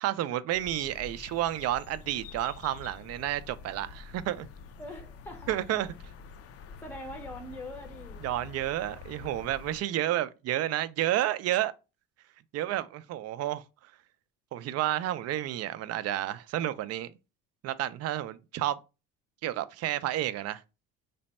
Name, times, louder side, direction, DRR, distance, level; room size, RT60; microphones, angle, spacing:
voice 1, 0.0-4.5 5.5-5.9 8.2-11.7 12.5-13.6 14.5-17.1 17.6-18.8 19.4-20.6, right 13 dB, 50° right, 0.4 m, -30 dB
sound 1, 0.5-9.8, left 6 dB, 45° left, 0.4 m, -47 dB
voice 2, 4.8-5.6 6.6-8.2, left 1 dB, 5° left, 0.6 m, -43 dB
3.3 x 2.1 x 4.0 m
cardioid pair, 110°, 33 cm